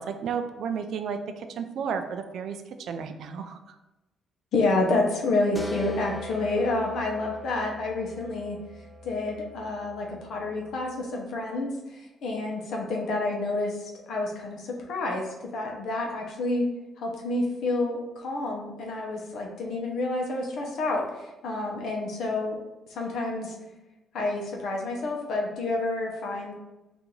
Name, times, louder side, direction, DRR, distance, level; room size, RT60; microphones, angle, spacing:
voice 1, 0.0-3.8, right 6 dB, 70° right, 8 dB, 0.3 m, -33 dB
voice 2, 4.5-8.6 9.0-16.6 17.0-22.6 22.9-23.5 24.1-26.5, left 2 dB, 75° left, 0 dB, 0.7 m, -29 dB
sound 1, 5.6-11.0, right 1 dB, 15° left, 0.4 m, -43 dB
2.9 x 2.5 x 3.8 m, 1.0 s
cardioid pair, 90°, 0 cm